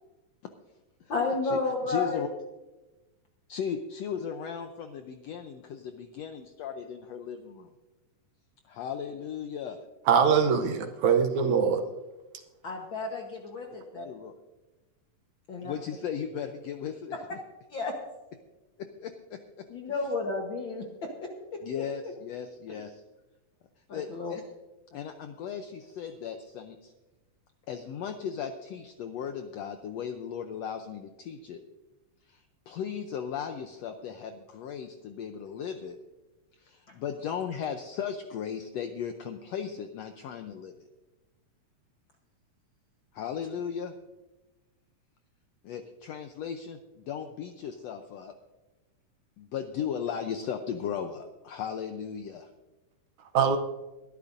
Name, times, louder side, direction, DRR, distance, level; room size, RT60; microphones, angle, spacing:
voice 1, 1.1-2.2 12.6-14.1 15.5-15.7 17.7-17.9 19.7-20.8 21.2-21.3 23.9-24.4, left 3 dB, 55° left, 1 dB, 1.3 m, -31 dB
voice 2, 1.9-2.3 3.5-7.7 8.7-9.8 14.0-14.3 15.6-17.4 18.8-19.7 21.6-23.0 23.9-24.4 24.9-26.9 27.7-31.6 32.3-36.0 36.6-40.7 43.1-43.9 45.6-48.3 49.4-52.5, left 7 dB, 85° left, 6 dB, 1.5 m, -36 dB
voice 3, 10.1-11.8 53.3-53.6, right 6 dB, 70° right, 7 dB, 2.0 m, -22 dB
21.5 x 12.0 x 2.6 m, 1.1 s
omnidirectional pair, 3.8 m